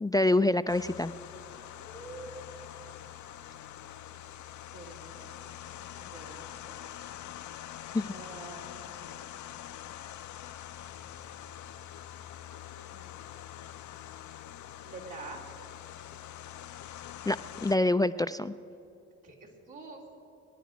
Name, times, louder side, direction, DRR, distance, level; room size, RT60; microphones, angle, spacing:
voice 1, 0.0-1.1 7.9-8.1 17.3-18.5, left 2 dB, 10° left, 13 dB, 0.3 m, -26 dB
sound 1, 0.7-17.8, left 11 dB, 65° left, 0.6 m, -45 dB
voice 2, 1.8-2.5 4.7-5.3 5.9-6.7 8.0-9.1 12.7-13.5 14.8-15.4 19.2-20.1, right 3 dB, 80° right, -3 dB, 3.1 m, -47 dB
23.0 x 10.0 x 5.1 m, 2.7 s
supercardioid pair, 55°, 32 cm